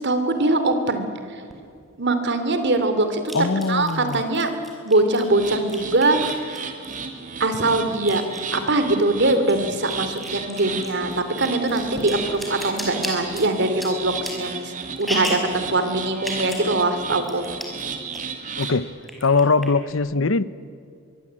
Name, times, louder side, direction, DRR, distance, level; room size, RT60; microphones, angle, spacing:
voice 1, 0.0-1.1 2.0-3.2 3.7-4.5 4.8-6.4 7.4-8.2 8.5-14.7 15.0-17.4, right 2 dB, 55° right, 9 dB, 2.9 m, -22 dB
sound 1, 1.5-1.6 3.3-7.2 7.6-9.1 9.4-15.5 16.2-16.7 17.0-17.1 17.2-17.8 18.1-18.7 19.0-19.9, equal, ahead, 5.5 m, -34 dB
voice 2, 3.3-4.2 18.6-18.9 19.2-20.4, left 4 dB, 65° left, 17 dB, 0.8 m, -21 dB
sound 2, 5.2-18.8, right 5 dB, 40° right, 2.5 m, -34 dB
25.0 x 23.0 x 8.9 m, 2.3 s
head